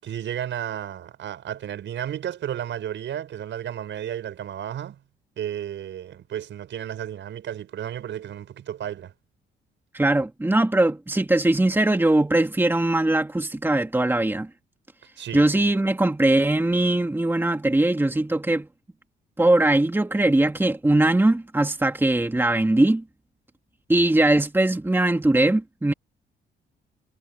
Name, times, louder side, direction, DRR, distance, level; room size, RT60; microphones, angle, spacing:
voice 1, 0.0-5.0 5.4-9.1 15.2-15.5, right 10 dB, 70° right, 6.5 m, -33 dB
voice 2, 9.9-14.5 15.3-18.7 19.4-23.0 23.9-25.9, right 2 dB, 10° right, 2.0 m, -21 dB
cardioid pair, 90°, 20 cm